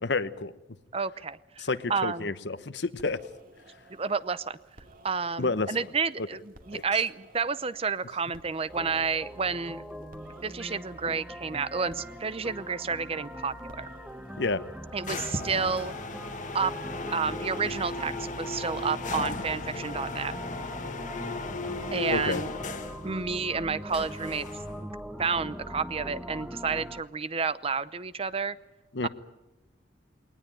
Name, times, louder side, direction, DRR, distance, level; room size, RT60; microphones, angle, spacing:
voice 1, 0.0-0.5 1.6-3.2 5.4-5.8 6.2-6.3 6.7-6.8 14.4-14.6 22.1-22.4 28.9-29.1, left 3 dB, 75° left, 13 dB, 1.1 m, -29 dB
voice 2, 0.9-2.3 3.9-4.6 5.0-9.8 10.4-13.9 14.9-15.9 16.5-16.7 17.1-20.3 21.9-22.5 23.0-24.5 24.8-24.9 25.2-28.6 29.0-29.1, right 5 dB, 35° right, 16 dB, 0.7 m, -30 dB
sound 1, 2.8-15.2, right 1 dB, 50° right, 2.5 m, -56 dB
sound 2, 8.7-27.0, equal, 5° right, 1.1 m, -41 dB
sound 3, 15.0-23.1 23.9-24.8, left 3 dB, 45° left, 1.6 m, -36 dB
21.0 x 19.0 x 8.9 m, 1.0 s
head